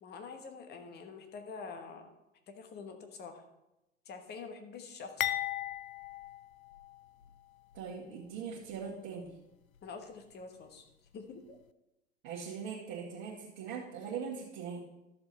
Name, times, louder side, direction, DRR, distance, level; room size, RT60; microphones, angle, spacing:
voice 1, 0.0-2.1 2.5-3.4 4.1-5.3 9.8-10.9 11.1-11.6, left 5 dB, 25° left, 6 dB, 1.2 m, -46 dB
sound 1, 5.2-7.4 7.7-7.9 8.7-8.9, left 12 dB, 75° left, 0.5 m, -37 dB
voice 2, 7.7-9.4 12.2-14.9, right 6 dB, 40° right, -7 dB, 1.9 m, -41 dB
12.5 x 6.8 x 4.1 m, 0.93 s
figure-of-eight pair, 90°, 41 cm